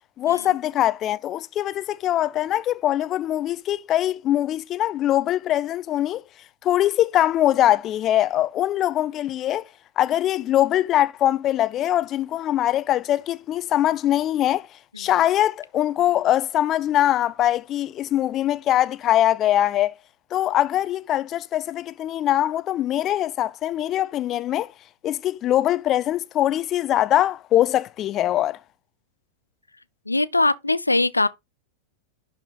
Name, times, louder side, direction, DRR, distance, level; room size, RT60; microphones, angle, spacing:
voice 1, 0.2-6.2 6.6-9.7 10.0-14.7 15.0-20.0 20.3-24.7 25.0-28.6, left 12 dB, 30° left, 0.6 m, -22 dB
voice 2, 30.1-31.3, left 2 dB, 85° left, 0.4 m, -21 dB
11.0 x 4.4 x 3.6 m
figure-of-eight pair, 90°, 0 cm